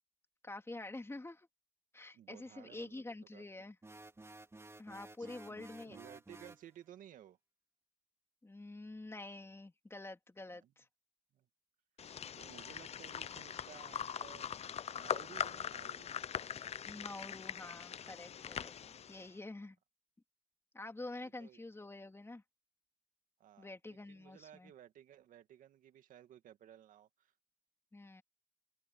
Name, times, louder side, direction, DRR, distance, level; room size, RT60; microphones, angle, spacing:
voice 1, 0.4-1.5 1.9-3.7 4.8-6.0 8.4-10.9 16.8-18.7 19.1-19.8 20.7-22.4 23.6-24.7 27.9-28.2, left 2 dB, 20° left, 3.3 m, -47 dB
voice 2, 2.1-3.4 5.2-7.4 10.6-10.7 11.3-11.5 12.3-14.6 14.9-16.1 18.8-19.6 21.2-21.6 23.4-27.3, right 11 dB, 85° right, 2.1 m, -57 dB
sound 1, 3.8-6.7, right 2 dB, 20° right, 3.0 m, -54 dB
sound 2, 12.0-19.3, left 8 dB, 50° left, 0.6 m, -42 dB
open air
cardioid pair, 75°, 13 cm